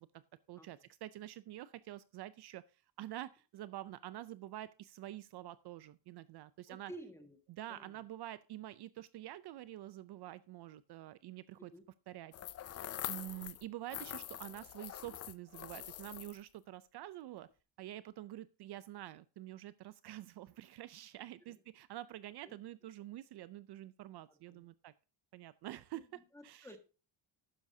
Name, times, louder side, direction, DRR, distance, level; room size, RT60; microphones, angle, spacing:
voice 1, 0.5-6.9 7.5-11.7 12.1-12.3 13.1-17.5 17.8-24.9 25.3-26.8, right 14 dB, 55° right, 16 dB, 0.5 m, -47 dB
voice 2, 6.7-7.4 7.7-8.0 11.7-11.8 22.4-22.6 24.3-24.6 25.9-26.8, right 1 dB, 5° left, 6 dB, 1.6 m, -53 dB
sound 1, 12.3-13.6 13.9-16.5, left 11 dB, 35° left, 0.4 m, -44 dB
12.0 x 9.7 x 2.7 m, 0.32 s
cardioid pair, 150°, 47 cm